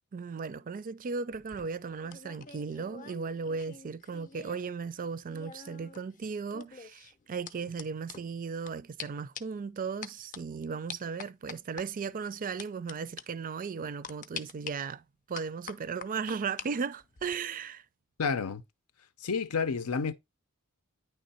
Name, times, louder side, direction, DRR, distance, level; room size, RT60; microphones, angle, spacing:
voice 1, 0.1-17.8, right 5 dB, 40° right, 0.4 m, -36 dB
sound 1, 1.3-4.7 5.0-8.7 9.0-9.1 9.3-9.6 10.0-10.4 10.9-11.8 12.6-12.9 13.2-13.3 14.0-14.7 15.3-16.7 17.0-17.4, left 6 dB, 35° left, 0.6 m, -45 dB
voice 2, 18.2-18.6 19.2-20.1, left 5 dB, 85° left, 0.6 m, -30 dB
9.4 x 3.3 x 4.1 m
head